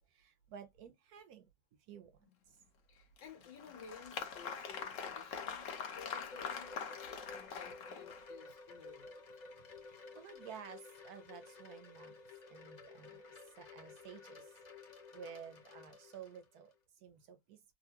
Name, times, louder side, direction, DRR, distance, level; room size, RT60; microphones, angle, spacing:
voice 1, 0.1-1.5 1.8-2.6 9.6-12.2 12.5-14.6 15.1-17.6, right 7 dB, 70° right, 0.9 m, -53 dB
voice 2, 2.9-9.4, left 6 dB, 75° left, 1.8 m, -56 dB
Applause, 3.2-8.5, left 6 dB, 55° left, 0.9 m, -44 dB
Wind chime, 4.8-16.7, left 4 dB, 35° left, 0.7 m, -54 dB
3.8 x 2.5 x 2.8 m
omnidirectional pair, 2.0 m